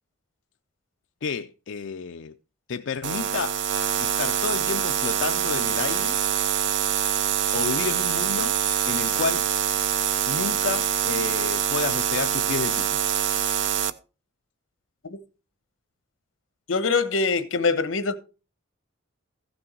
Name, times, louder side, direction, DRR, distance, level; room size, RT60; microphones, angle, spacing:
voice 1, 1.2-2.3 2.7-3.6 4.0-6.2 7.5-8.6 8.9-9.5 10.3-13.0, left 5 dB, 65° left, 0.4 m, -30 dB
sound 1, 3.0-13.9, right 9 dB, 65° right, 0.6 m, -25 dB
voice 2, 16.7-18.2, left 4 dB, 90° left, 1.1 m, -23 dB
15.0 x 6.2 x 4.5 m
head